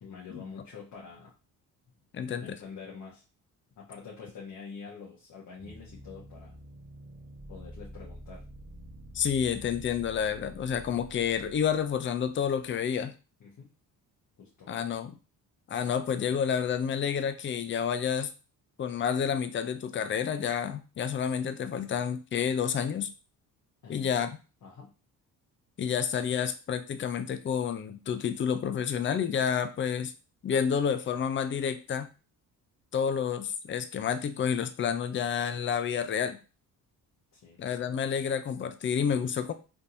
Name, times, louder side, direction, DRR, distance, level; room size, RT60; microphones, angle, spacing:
voice 1, 0.0-1.3 2.4-3.2 3.8-6.5 7.5-8.4 13.4-13.7 14.4-14.7 23.8-24.2 24.6-24.9 37.3-37.6, left 5 dB, 55° left, -4 dB, 1.2 m, -46 dB
voice 2, 2.1-2.6 9.1-13.1 14.7-15.1 15.7-18.3 18.8-23.1 23.9-24.4 25.8-30.1 30.4-32.1 32.9-36.4 37.6-39.5, left 7 dB, 30° left, 10 dB, 0.5 m, -29 dB
sound 1, 5.6-12.7, equal, 25° right, 0.8 m, -48 dB
3.5 x 2.9 x 2.6 m, 0.32 s
cardioid pair, 75°, 39 cm